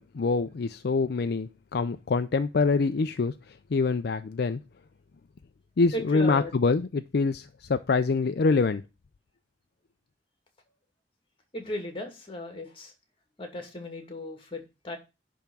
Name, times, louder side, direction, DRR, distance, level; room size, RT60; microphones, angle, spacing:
voice 1, 0.0-4.6 5.8-8.8, left 4 dB, 60° left, 0.4 m, -25 dB
voice 2, 5.9-6.5 11.5-12.9 13.4-15.0, left 1 dB, 30° left, 2.3 m, -36 dB
10.5 x 3.6 x 6.9 m
head